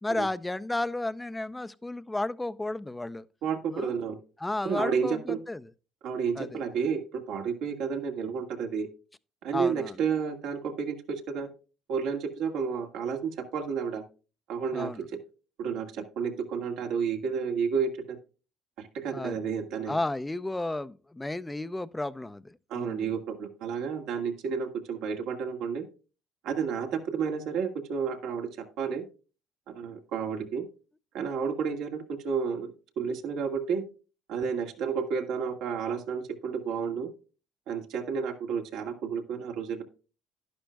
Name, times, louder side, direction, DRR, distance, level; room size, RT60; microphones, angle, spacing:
voice 1, 0.0-3.3 3.7-3.9 4.4-5.7 6.4-6.6 9.5-10.0 14.7-15.1 19.1-19.4 19.9-23.1, left 2 dB, 10° left, 0.5 m, -33 dB
voice 2, 3.4-4.2 4.6-5.4 6.0-8.9 9.4-11.5 11.9-14.0 14.5-14.9 15.6-18.2 18.8-20.0 22.7-25.8 26.4-29.0 29.7-30.6 31.1-33.8 34.3-37.1 37.7-39.8, right 6 dB, 75° right, 2.0 m, -31 dB
11.5 x 11.0 x 2.3 m
cardioid pair, 105°, 0 cm